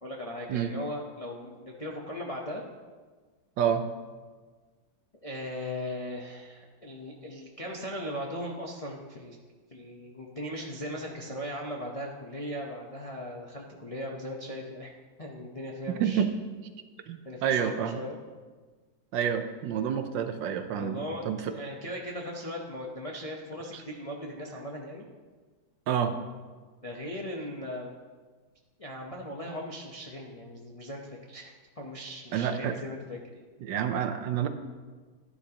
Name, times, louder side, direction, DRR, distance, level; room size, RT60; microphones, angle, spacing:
voice 1, 0.0-2.6 5.2-9.4 9.7-14.9 15.2-16.2 17.2-18.2 20.7-25.1 26.8-27.9 28.8-33.5, equal, 50° left, -2 dB, 0.4 m, -38 dB
voice 2, 17.1-18.0 19.1-21.5 25.9-26.2 32.3-32.7 33.6-34.5, right 8 dB, 70° right, 8 dB, 1.3 m, -28 dB
11.0 x 11.0 x 2.9 m, 1.4 s
omnidirectional pair, 2.2 m